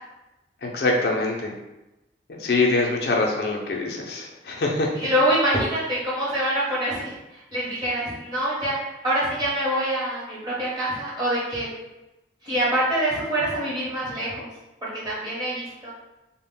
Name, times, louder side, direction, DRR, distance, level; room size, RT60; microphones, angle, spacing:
voice 1, 0.6-1.5 2.3-5.1, left 2 dB, 65° left, 0 dB, 0.4 m, -24 dB
voice 2, 4.9-7.2 7.5-8.8 9.0-11.7 12.4-14.5 14.8-15.9, right 1 dB, 25° right, -8 dB, 0.8 m, -25 dB
2.1 x 2.0 x 3.6 m, 0.98 s
head